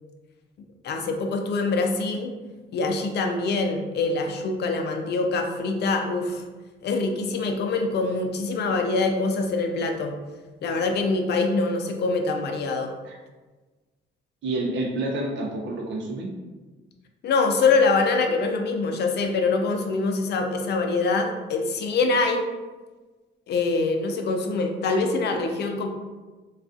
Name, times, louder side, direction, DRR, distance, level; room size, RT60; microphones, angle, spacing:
voice 1, 0.8-2.3 2.7-6.4 6.8-10.2 10.6-12.9 17.2-22.4 23.5-25.9, left 3 dB, 60° left, 4 dB, 0.4 m, -24 dB
voice 2, 14.4-16.3, right 2 dB, 65° right, 0 dB, 0.6 m, -28 dB
2.3 x 2.3 x 2.5 m, 1.3 s
cardioid pair, 90°, 20 cm